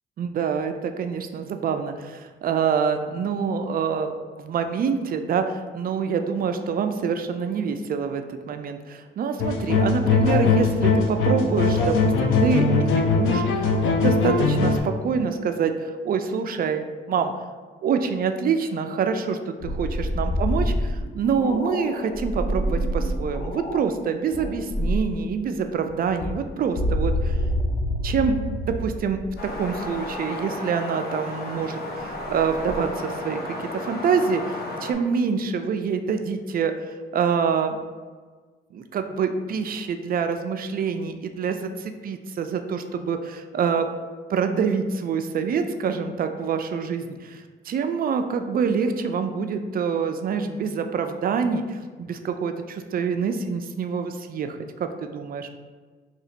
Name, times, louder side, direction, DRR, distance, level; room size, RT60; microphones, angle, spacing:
voice 1, 0.2-17.3 17.8-27.4 28.0-28.4 28.7-29.2 29.6-33.4 33.7-36.7 37.1-37.8 38.7-43.9 44.3-55.5, right 6 dB, 50° right, 7 dB, 0.4 m, -26 dB
sound 1, 9.4-14.8, left 4 dB, 80° left, 0.5 m, -20 dB
sound 2, 19.6-23.9 24.3-25.2 25.9-30.0 32.3-32.8, equal, 30° left, 0.4 m, -27 dB
sound 3, 29.4-34.9, left 2 dB, 50° left, 0.8 m, -33 dB
2.9 x 2.7 x 4.1 m, 1.4 s
cardioid pair, 90°, 20 cm